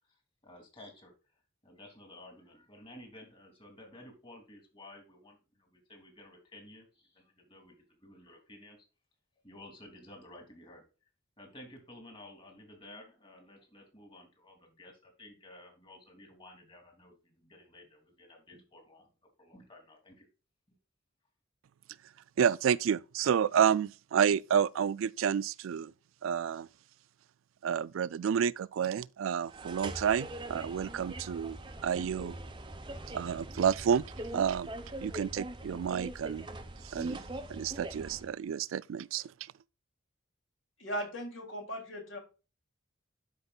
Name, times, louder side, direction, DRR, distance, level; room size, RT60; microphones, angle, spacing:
voice 1, 0.4-1.1 1.6-8.8 9.4-10.8 11.4-19.1 19.4-20.3, left 1 dB, 25° left, 2.8 m, -53 dB
voice 2, 22.4-25.9 26.2-26.7 27.6-32.4 33.1-34.0 34.3-34.7 35.0-36.5 36.8-37.2 37.5-39.5, right 8 dB, 80° right, 0.3 m, -30 dB
sound 1, 29.5-38.3, right 1 dB, 25° right, 0.9 m, -42 dB
voice 3, 40.8-42.2, equal, 65° left, 3.2 m, -38 dB
12.0 x 5.2 x 2.4 m
head